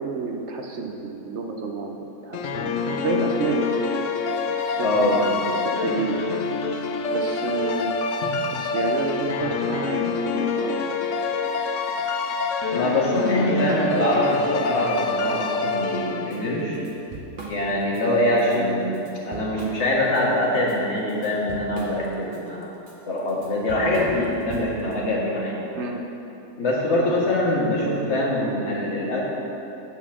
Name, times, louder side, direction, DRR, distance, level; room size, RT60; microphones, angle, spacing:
voice 1, 0.0-3.8 4.5-5.0 5.6-6.3 7.1-8.0 8.6-10.8 18.5-18.7 25.7-26.0, right 4 dB, 60° right, 2 dB, 0.8 m, -30 dB
sound 1, 2.3-16.6, left 4 dB, 65° left, 0.8 m, -26 dB
voice 2, 4.8-5.5 12.7-16.8 17.5-22.7 23.1-25.5 26.6-29.2, left 1 dB, 45° left, -4 dB, 1.7 m, -23 dB
Drum kit / Drum, 16.3-16.4 16.7-18.0 18.4-18.6 18.9-20.2 20.6-24.9, right 3 dB, 40° right, 1.1 m, -40 dB
9.4 x 4.1 x 7.2 m, 2.9 s
omnidirectional pair, 1.6 m